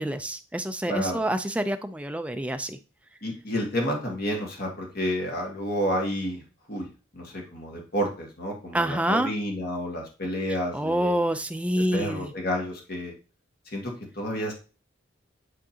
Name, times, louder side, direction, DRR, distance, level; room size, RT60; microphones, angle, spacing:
voice 1, 0.0-2.8 8.7-9.3 10.7-12.3, right 1 dB, 5° right, 7 dB, 0.4 m, -27 dB
voice 2, 0.9-1.2 3.2-6.4 6.7-6.9 7.1-11.2 11.9-13.1 13.7-14.5, equal, 50° left, 0 dB, 1.7 m, -30 dB
10.0 x 3.7 x 2.8 m, 0.35 s
head